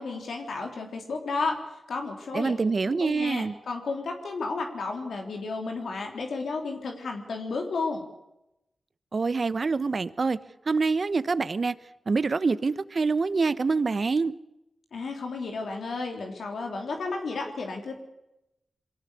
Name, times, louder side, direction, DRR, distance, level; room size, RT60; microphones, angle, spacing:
voice 1, 0.0-1.6 1.9-2.5 2.8-8.0 14.9-18.0, left 3 dB, 85° left, 2 dB, 3.7 m, -32 dB
voice 2, 2.3-3.5 9.1-10.4 10.7-11.7 12.1-14.3, right 4 dB, 55° right, 15 dB, 1.1 m, -25 dB
23.0 x 17.5 x 8.4 m, 0.87 s
cardioid pair, 55°, 0 cm